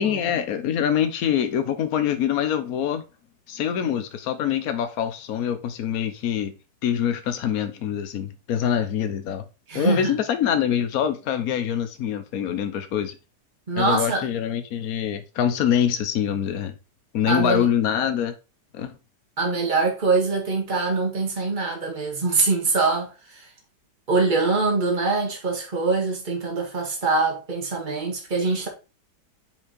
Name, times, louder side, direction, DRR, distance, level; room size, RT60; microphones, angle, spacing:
voice 1, 0.0-3.0 3.5-6.5 6.8-9.4 9.7-13.2 13.7-16.7 17.1-18.3 18.7-19.0, left 9 dB, 60° left, 1.2 m, -24 dB
voice 2, 9.7-10.1 13.7-14.3 17.3-17.7 19.4-23.4 24.1-28.7, right 3 dB, 25° right, 1.9 m, -23 dB
5.5 x 4.9 x 4.3 m
omnidirectional pair, 1.9 m